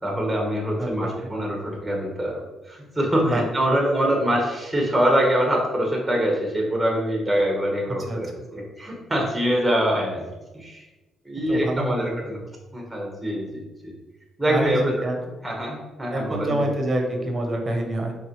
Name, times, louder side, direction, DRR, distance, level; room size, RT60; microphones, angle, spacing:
voice 1, 0.0-10.3 10.5-10.8 11.2-12.4 12.7-13.9 14.4-14.9 15.4-16.7, equal, 5° right, -1 dB, 1.4 m, -24 dB
voice 2, 0.8-1.1 3.2-3.4 8.1-8.2 11.5-12.3 14.5-15.2 16.1-18.1, right 1 dB, 35° right, 3 dB, 1.0 m, -26 dB
4.5 x 3.6 x 3.2 m, 1.1 s
cardioid pair, 80°, 0 cm